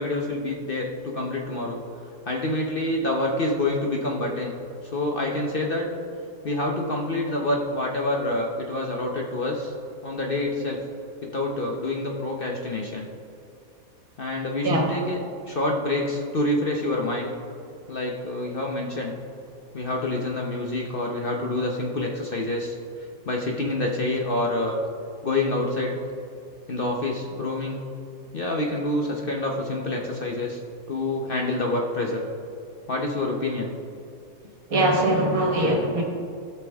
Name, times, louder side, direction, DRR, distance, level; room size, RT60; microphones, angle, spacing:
voice 1, 0.0-1.8 2.3-4.5 4.8-5.9 6.4-9.7 10.0-10.8 11.2-13.1 14.2-17.3 17.9-19.1 19.7-22.8 23.3-24.8 25.2-26.0 26.7-27.8 28.3-30.6 30.9-32.2 32.9-33.7, left 2 dB, 45° left, 0 dB, 0.9 m, -27 dB
voice 2, 34.7-36.0, right 1 dB, 65° right, 1 dB, 1.9 m, -21 dB
17.0 x 6.1 x 3.5 m, 2.5 s
omnidirectional pair, 1.6 m